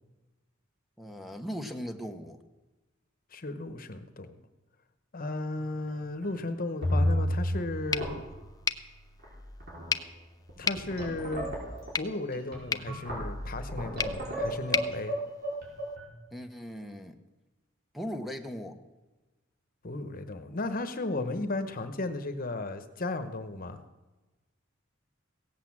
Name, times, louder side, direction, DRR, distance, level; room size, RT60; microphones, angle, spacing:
voice 1, 1.0-2.4 16.3-17.1 17.9-18.8, equal, ahead, 6 dB, 0.9 m, -38 dB
voice 2, 3.3-4.4 5.1-8.1 10.6-11.5 12.0-15.2 19.8-23.8, left 2 dB, 45° left, 9 dB, 1.1 m, -35 dB
sound 1, 5.5-5.9 6.2-6.3 6.8-7.6 7.9-8.5 9.2-9.3 9.6-10.0 10.5-16.0, equal, 55° right, 4.9 m, -32 dB
sound 2, 7.9-16.0, left 5 dB, 20° left, 0.5 m, -37 dB
17.0 x 8.4 x 7.4 m, 1.1 s
head